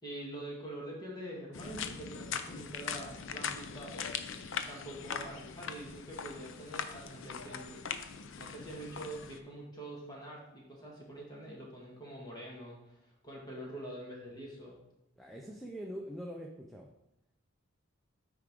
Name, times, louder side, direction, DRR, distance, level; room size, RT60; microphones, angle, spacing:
voice 1, 0.0-4.3 4.7-7.8 8.4-14.8, right 1 dB, 20° left, -3 dB, 1.8 m, -45 dB
sound 1, 1.5-9.4, left 6 dB, 60° left, 0.5 m, -41 dB
voice 2, 15.2-16.9, equal, ahead, -1 dB, 0.5 m, -43 dB
9.1 x 4.9 x 3.7 m, 0.87 s
head